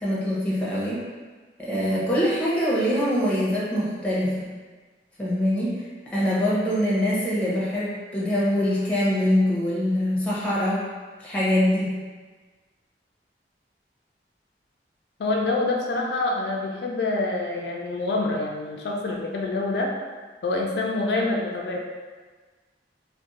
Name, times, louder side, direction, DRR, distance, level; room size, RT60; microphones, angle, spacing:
voice 1, 0.0-1.0 1.6-4.3 5.2-10.9 11.2-11.9, equal, 10° left, -8 dB, 0.7 m, -24 dB
voice 2, 15.2-19.9 20.4-21.8, left 2 dB, 75° left, -1 dB, 0.4 m, -26 dB
2.5 x 2.1 x 4.0 m, 1.4 s
head